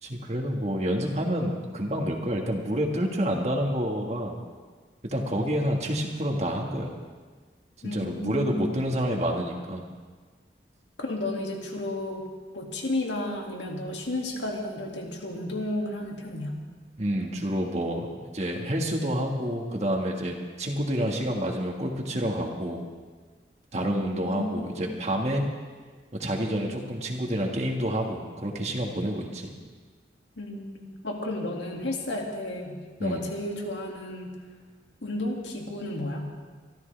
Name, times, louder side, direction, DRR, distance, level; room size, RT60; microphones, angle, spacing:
voice 1, 0.0-4.4 5.0-6.9 7.8-9.9 17.0-22.8 23.7-25.4 26.2-29.5 33.0-33.2, equal, 35° right, 1 dB, 1.7 m, -28 dB
voice 2, 7.8-8.8 11.0-12.3 12.5-16.6 23.7-24.8 30.4-34.4 35.0-36.3, left 1 dB, 85° left, 0 dB, 2.3 m, -33 dB
24.5 x 13.0 x 3.4 m, 1.5 s
head